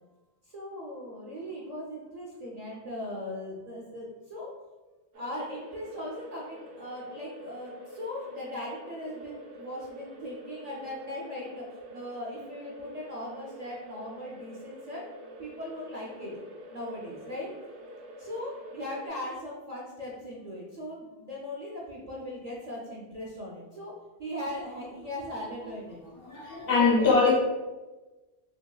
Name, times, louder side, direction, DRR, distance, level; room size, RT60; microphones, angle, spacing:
voice 1, 0.4-4.5 5.1-11.6 11.9-15.0 15.4-16.3 16.7-17.5 18.2-23.9 24.2-26.0 26.6-27.3, left 1 dB, 50° right, -5 dB, 0.5 m, -39 dB
sound 1, 5.1-19.1, equal, 80° right, 0.9 m, -47 dB
voice 2, 26.2-27.3, left 4 dB, 60° left, -4 dB, 1.0 m, -22 dB
2.9 x 2.7 x 2.2 m, 1.2 s
omnidirectional pair, 1.1 m